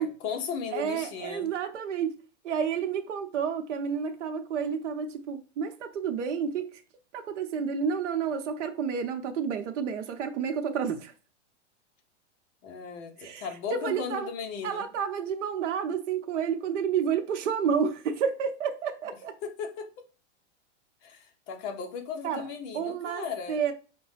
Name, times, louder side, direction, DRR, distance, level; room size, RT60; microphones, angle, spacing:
voice 1, 0.0-1.5 12.6-14.9 19.4-19.9 21.0-23.6, left 6 dB, 30° left, 0.6 m, -36 dB
voice 2, 0.7-2.2 2.4-6.8 7.1-11.1 13.2-14.3 14.6-19.4 22.2-22.5 22.7-23.7, right 7 dB, 80° right, 0.7 m, -30 dB
4.7 x 2.2 x 3.1 m
supercardioid pair, 145°, 36 cm